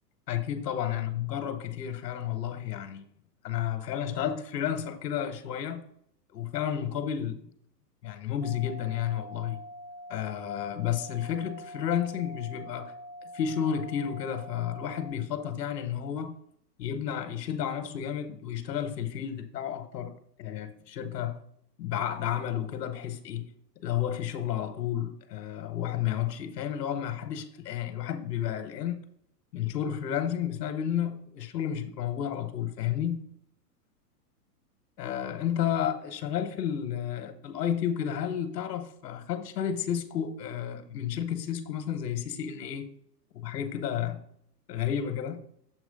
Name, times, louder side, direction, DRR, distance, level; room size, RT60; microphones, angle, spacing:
voice 1, 0.3-3.1 3.4-5.9 6.3-7.5 8.0-9.6 10.1-12.9 13.2-16.4 16.8-20.1 20.4-21.4 21.8-23.5 23.8-29.0 29.5-33.2 35.0-42.9 43.4-44.2 44.7-45.4, left 9 dB, 75° left, 1.0 m, -31 dB
sound 1, 8.4-15.1, equal, 85° right, 2.3 m, -45 dB
7.3 x 3.1 x 5.1 m
hypercardioid pair, 140°, 49 cm